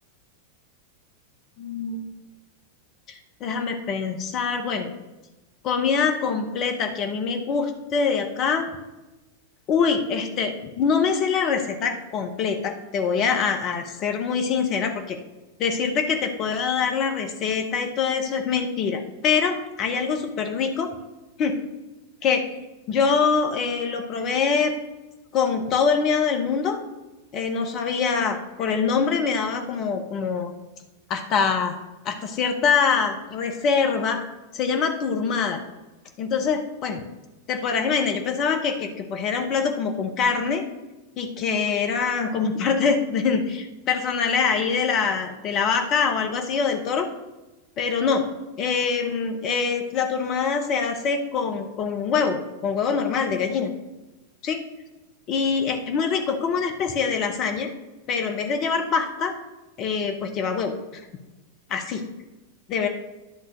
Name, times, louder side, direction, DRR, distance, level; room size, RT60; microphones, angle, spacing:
voice 1, 1.6-2.0 3.1-4.9 5.6-8.7 9.7-15.2 15.6-20.9 21.4-21.6 22.2-22.6 22.9-24.7 25.3-26.8 27.3-30.5 31.1-31.7 32.0-34.2 34.5-35.6 36.2-37.0 37.5-40.6 41.2-47.1 47.8-48.2 48.6-53.7 54.4-54.6 55.3-57.7 58.1-59.3 59.8-61.0 61.7-62.0 62.7-62.9, left 5 dB, 35° left, 5 dB, 0.9 m, -24 dB
11.0 x 3.9 x 6.5 m, 1.1 s
figure-of-eight pair, 90°, 0 cm